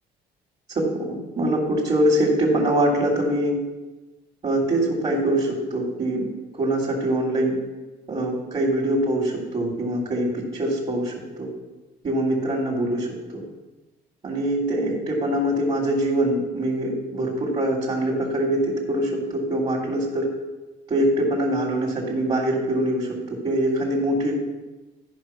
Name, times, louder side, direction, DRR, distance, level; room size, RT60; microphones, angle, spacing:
voice 1, 0.7-3.6 4.4-6.3 6.5-7.5 8.1-11.5 12.0-13.4 14.2-20.3 20.9-24.3, right 1 dB, 35° right, -2 dB, 2.4 m, -23 dB
12.5 x 5.3 x 5.5 m, 1.1 s
cardioid pair, 110°, 17 cm